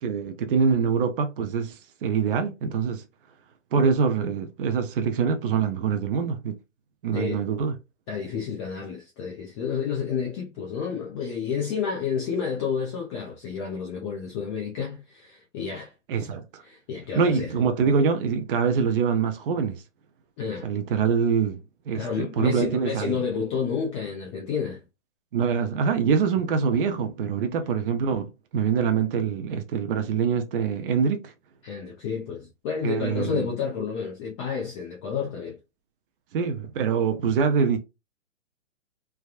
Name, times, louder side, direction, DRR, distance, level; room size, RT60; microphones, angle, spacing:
voice 1, 0.0-3.0 3.7-6.6 7.0-7.8 16.1-16.6 17.2-19.8 20.6-21.6 21.9-23.2 25.3-31.3 32.8-33.5 36.3-37.8, right 6 dB, 50° right, 0.6 m, -24 dB
voice 2, 7.1-7.4 8.1-15.9 16.2-16.3 16.6-17.5 20.4-20.7 21.9-24.8 31.6-35.6, left 6 dB, 25° left, 0.6 m, -30 dB
3.4 x 2.2 x 2.3 m
hypercardioid pair, 135°, 36 cm